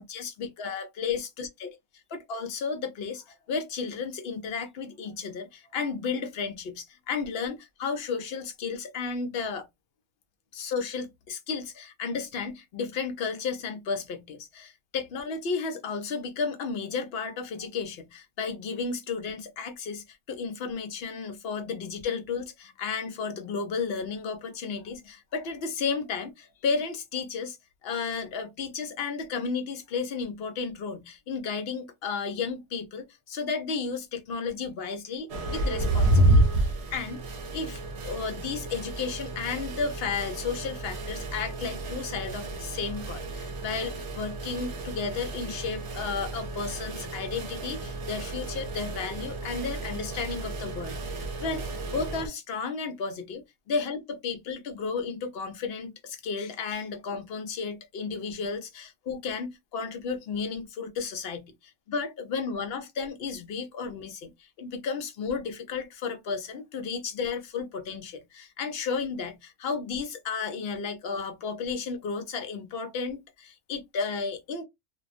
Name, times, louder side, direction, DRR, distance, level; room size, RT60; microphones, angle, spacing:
voice 1, 0.0-1.8 2.1-9.7 10.5-27.6 27.8-37.2 37.5-51.6 51.9-74.6, left 5 dB, 60° left, 0.8 m, -33 dB
sound 1, 35.3-52.3, right 1 dB, 70° right, 0.9 m, -30 dB
2.4 x 2.1 x 2.4 m
omnidirectional pair, 1.3 m